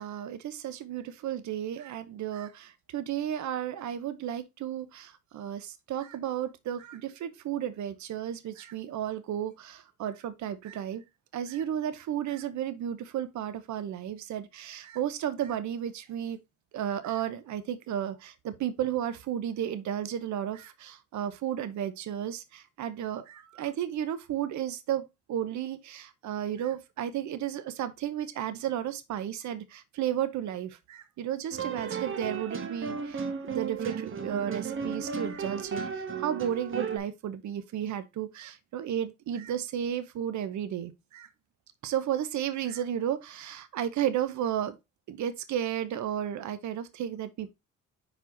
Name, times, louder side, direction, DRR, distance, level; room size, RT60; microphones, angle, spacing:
voice 1, 0.0-11.0 11.3-16.4 16.7-41.3 41.8-44.8 45.1-47.5, right 10 dB, 70° right, 0.9 m, -33 dB
sound 1, 31.5-37.0, right 6 dB, 40° right, 1.3 m, -34 dB
5.5 x 5.0 x 3.9 m
cardioid pair, 90°, 30 cm